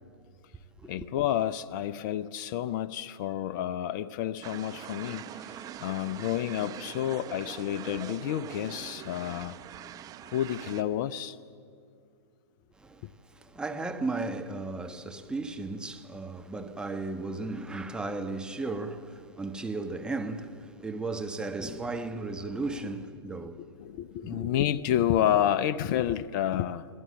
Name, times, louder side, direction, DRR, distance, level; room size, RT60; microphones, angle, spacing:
voice 1, 0.9-9.6 10.3-11.4 23.8-26.9, left 11 dB, 45° left, 0.7 m, -29 dB
sound 1, 4.4-10.8, right 10 dB, 25° right, 1.0 m, -43 dB
voice 2, 12.8-23.7 24.2-24.5, right 3 dB, 5° right, 1.3 m, -35 dB
28.0 x 18.5 x 7.6 m
hypercardioid pair, 110°, 14 cm